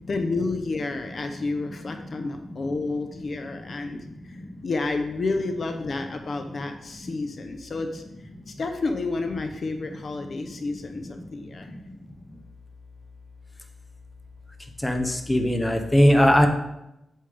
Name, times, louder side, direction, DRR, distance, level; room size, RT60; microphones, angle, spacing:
voice 1, 0.1-8.0 8.5-11.7, left 3 dB, 45° left, 6 dB, 0.7 m, -30 dB
voice 2, 14.8-16.5, equal, 10° left, 5 dB, 0.8 m, -19 dB
8.5 x 7.4 x 3.5 m, 0.88 s
wide cardioid pair, 125°, 0 cm